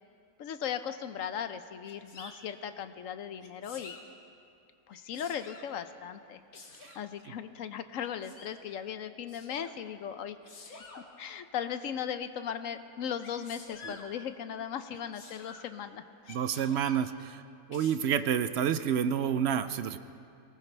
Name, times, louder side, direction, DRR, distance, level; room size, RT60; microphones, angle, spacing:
voice 1, 0.4-4.0 4.9-6.4 7.0-10.4 11.2-16.0, left 8 dB, 70° left, 10 dB, 1.0 m, -37 dB
Sneeze, 1.8-2.3 3.4-4.0 4.9-5.7 6.5-7.0 8.0-8.5 9.3-9.7 10.4-11.0 13.2-14.1 14.9-15.7 16.2-17.0 17.7-18.0, left 4 dB, 85° left, 1.9 m, -49 dB
voice 2, 16.3-17.4 17.7-20.0, right 8 dB, 65° right, 11 dB, 0.7 m, -29 dB
22.5 x 19.0 x 3.3 m, 2.5 s
omnidirectional pair, 1.5 m